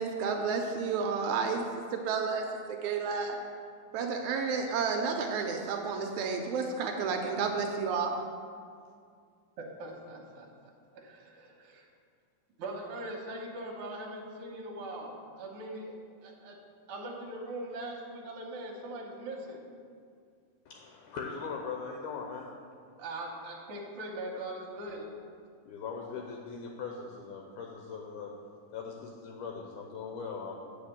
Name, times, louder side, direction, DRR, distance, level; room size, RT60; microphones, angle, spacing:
voice 1, 0.0-1.6 1.9-3.4 3.9-8.2, right 5 dB, 85° right, 3 dB, 1.7 m, -31 dB
voice 2, 9.6-11.9 12.6-15.9 16.2-16.6 16.9-19.6 23.0-25.1, right 1 dB, 60° right, -1 dB, 1.4 m, -41 dB
voice 3, 20.7-22.5 25.6-28.3 28.7-30.5, left 5 dB, 75° left, 1 dB, 2.1 m, -40 dB
8.1 x 4.3 x 7.1 m, 2.2 s
omnidirectional pair, 3.9 m